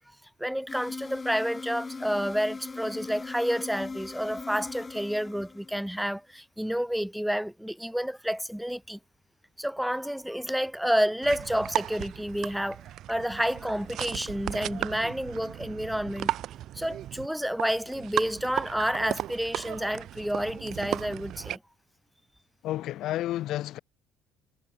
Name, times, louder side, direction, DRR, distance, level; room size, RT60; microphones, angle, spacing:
voice 1, 0.4-9.0 9.6-12.8 13.1-16.3 16.7-21.6, equal, ahead, 3.2 m, -29 dB
sound 1, 0.7-6.0, left 4 dB, 20° left, 6.8 m, -39 dB
sound 2, 11.2-21.6, right 12 dB, 60° right, 1.3 m, -35 dB
voice 2, 22.6-23.8, left 14 dB, 65° left, 3.4 m, -31 dB
cardioid pair, 105°, 0 cm